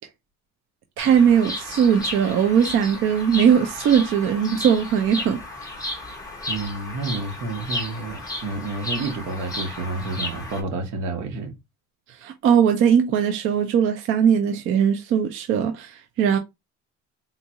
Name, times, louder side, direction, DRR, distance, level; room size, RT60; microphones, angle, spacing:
Bird vocalization bird call bird song, 1.0-10.6, left 2 dB, 10° left, 0.9 m, -33 dB
voice 1, 1.0-5.4 12.1-16.4, right 8 dB, 45° right, 0.4 m, -20 dB
voice 2, 6.5-11.6, right 3 dB, 70° right, 1.1 m, -30 dB
3.7 x 2.3 x 2.8 m
cardioid pair, 170°, 30 cm